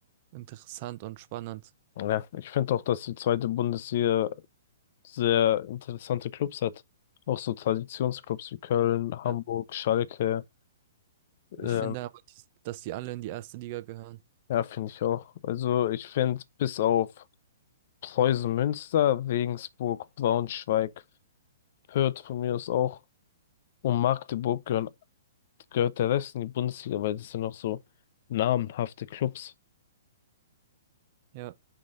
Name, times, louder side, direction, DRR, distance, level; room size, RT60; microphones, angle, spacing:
voice 1, 0.3-1.7 9.2-9.4 11.6-14.2 31.3-31.5, right 16 dB, 40° right, 0.8 m, -39 dB
voice 2, 2.0-4.4 5.0-6.8 7.3-10.4 11.5-11.9 14.5-17.1 18.0-20.9 21.9-23.0 23.8-24.9 25.7-27.8 28.3-29.5, left 11 dB, 55° left, 0.6 m, -28 dB
5.7 x 5.0 x 3.8 m
hypercardioid pair, 140°, 0 cm